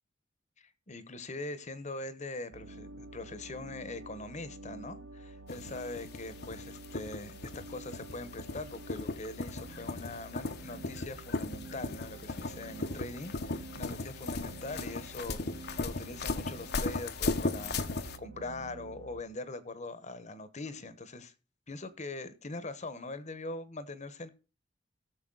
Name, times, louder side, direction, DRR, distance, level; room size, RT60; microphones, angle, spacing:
voice 1, 0.6-17.8 18.2-21.3 21.7-24.3, left 2 dB, 40° left, 1.1 m, -42 dB
sound 1, 2.5-19.2, right 3 dB, 85° right, 0.7 m, -49 dB
sound 2, 5.5-18.2, left 3 dB, 60° left, 1.0 m, -37 dB
17.5 x 7.0 x 4.0 m
head